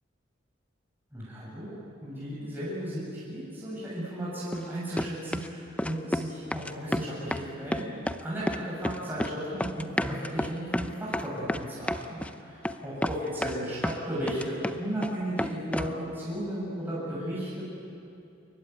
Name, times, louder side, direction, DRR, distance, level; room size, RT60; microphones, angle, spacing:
voice 1, 1.1-1.8 2.0-17.6, right 1 dB, 10° right, -8 dB, 6.9 m, -35 dB
sound 1, 4.5-4.7 5.0-5.5 5.8-6.3 6.5-7.5 7.7-8.2 8.5-9.3 9.6-12.3 12.6-12.8 13.0-14.0 14.3-15.1 15.4-16.0, left 1 dB, 5° left, 0.8 m, -30 dB
27.5 x 23.0 x 9.3 m, 2.6 s
head